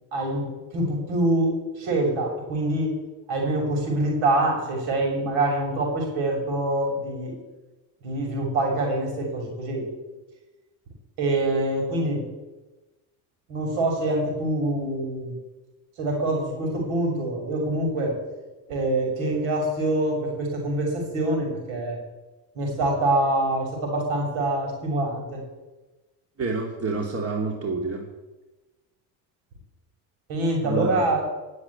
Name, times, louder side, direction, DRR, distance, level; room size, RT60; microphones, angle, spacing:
voice 1, 0.1-2.9 3.3-7.3 8.0-9.9 11.2-12.3 13.5-15.4 16.0-18.2 18.7-22.0 22.6-25.4 30.3-31.3, right 1 dB, 70° right, 1 dB, 6.8 m, -25 dB
voice 2, 26.4-28.1 30.6-31.0, right 3 dB, 30° right, 0 dB, 3.1 m, -28 dB
18.0 x 8.2 x 8.6 m, 1.1 s
supercardioid pair, 80°, 48 cm